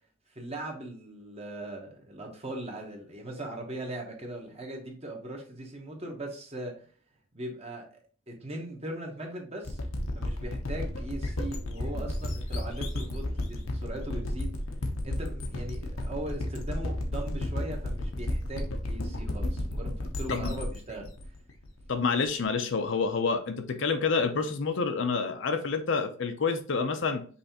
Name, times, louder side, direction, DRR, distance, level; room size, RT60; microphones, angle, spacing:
voice 1, 0.3-6.9 7.3-7.9 8.3-9.8 10.1-14.6 15.0-21.1, right 1 dB, 30° right, 1.0 m, -39 dB
sound 1, 9.6-22.3, left 1 dB, 85° left, 0.9 m, -33 dB
voice 2, 21.9-27.2, left 4 dB, 60° left, 0.6 m, -28 dB
5.5 x 3.3 x 2.8 m
head